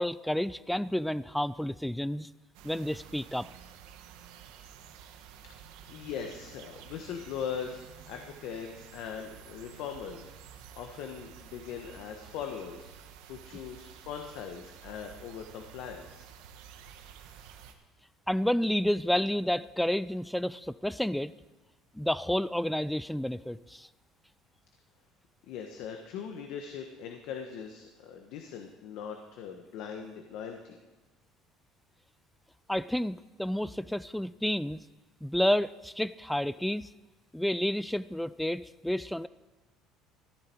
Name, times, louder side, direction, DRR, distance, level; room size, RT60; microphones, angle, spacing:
voice 1, 0.0-2.3 2.6-3.5 18.3-21.3 21.9-23.9 32.7-34.8 35.2-36.9 37.3-39.3, equal, ahead, 18 dB, 0.3 m, -30 dB
sound 1, 2.5-17.7, right 8 dB, 85° right, 1.3 m, -51 dB
voice 2, 5.9-12.9 13.3-16.3 25.5-30.8, left 7 dB, 65° left, 4 dB, 1.3 m, -40 dB
14.5 x 11.5 x 4.6 m, 1.2 s
cardioid pair, 150°, 0 cm